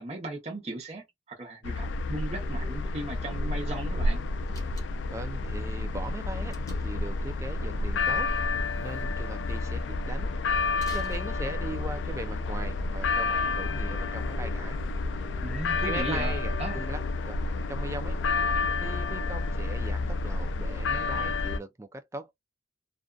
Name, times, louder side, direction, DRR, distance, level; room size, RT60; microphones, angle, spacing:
voice 1, 0.0-4.2 15.4-16.8, right 2 dB, 35° right, 0.8 m, -37 dB
sound 1, 1.6-21.6, left 3 dB, 90° left, 0.3 m, -30 dB
sound 2, 2.4-19.5, left 1 dB, 90° right, 1.1 m, -49 dB
Slam, 4.5-5.2 6.5-7.1 10.7-11.8, left 1 dB, 20° left, 0.8 m, -49 dB
voice 2, 5.1-6.6 6.8-8.3 8.8-10.3 10.6-14.8 15.8-17.4 17.7-18.2 18.8-22.3, right 2 dB, 15° right, 0.3 m, -39 dB
2.5 x 2.4 x 2.2 m
head